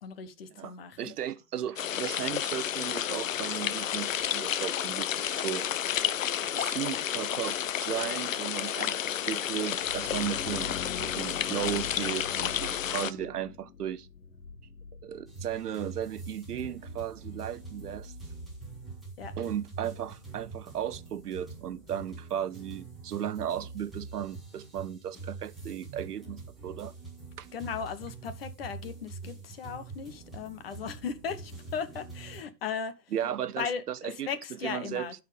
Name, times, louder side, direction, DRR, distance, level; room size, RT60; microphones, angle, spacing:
voice 1, 0.0-1.1 19.2-19.3 27.5-33.0 33.6-35.1, left 6 dB, 35° left, 1.2 m, -37 dB
voice 2, 0.6-5.7 6.6-14.1 15.0-18.1 19.4-26.9 27.4-27.5 33.1-34.3 34.6-35.1, right 10 dB, 70° right, 0.9 m, -35 dB
sound 1, 1.8-13.1, left 10 dB, 55° left, 0.7 m, -31 dB
sound 2, 9.6-21.2, left 5 dB, 85° left, 2.3 m, -44 dB
sound 3, 15.3-32.4, right 4 dB, ahead, 1.5 m, -45 dB
12.5 x 4.6 x 5.1 m
hypercardioid pair, 170°, 49 cm